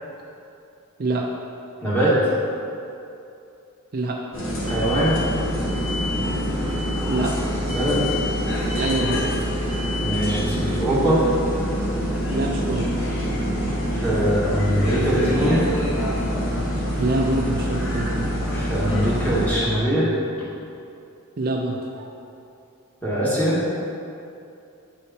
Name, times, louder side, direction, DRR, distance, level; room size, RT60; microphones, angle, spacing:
voice 1, 1.8-2.3 4.6-5.2 7.7-8.0 10.0-11.2 13.9-15.6 18.5-20.1 23.0-23.6, equal, 10° left, -9 dB, 1.8 m, -22 dB
sound 1, 4.3-19.5, equal, 60° left, 1.5 m, -25 dB
voice 2, 8.8-9.3 12.3-12.9 16.8-18.3 21.4-22.1, right 2 dB, 45° right, 0 dB, 0.5 m, -25 dB
7.9 x 5.2 x 4.2 m, 2.7 s
head